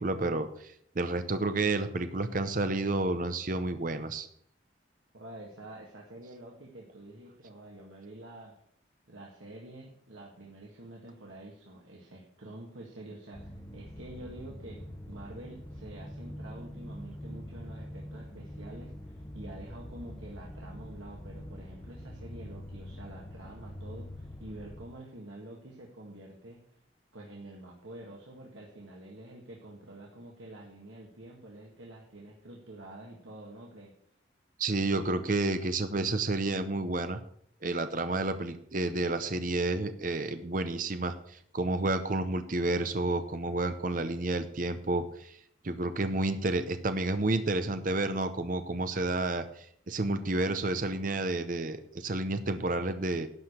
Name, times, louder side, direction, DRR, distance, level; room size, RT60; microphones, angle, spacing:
voice 1, 0.0-4.3 34.6-37.2 37.6-45.4 45.6-53.3, right 2 dB, 45° right, 9 dB, 0.7 m, -30 dB
voice 2, 5.1-8.5 9.1-14.8 15.1-26.6 27.1-33.9, right 1 dB, 80° right, -2 dB, 1.9 m, -47 dB
sound 1, 13.3-24.9, left 1 dB, 15° left, 1.1 m, -44 dB
11.5 x 5.0 x 8.6 m, 0.66 s
head